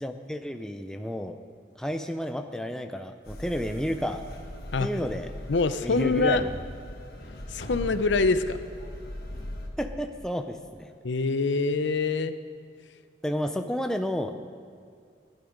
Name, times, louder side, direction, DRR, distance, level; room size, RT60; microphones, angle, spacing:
voice 1, 0.0-1.4 1.8-4.2 4.8-5.3 5.8-6.5 9.8-10.9 13.2-14.3, equal, 5° left, 6 dB, 0.5 m, -31 dB
sound 1, 3.3-9.7, left 1 dB, 55° left, 1.5 m, -39 dB
voice 2, 5.5-6.4 7.5-8.6 11.0-12.4, left 3 dB, 75° left, 11 dB, 0.6 m, -24 dB
15.5 x 11.0 x 5.2 m, 2.2 s
head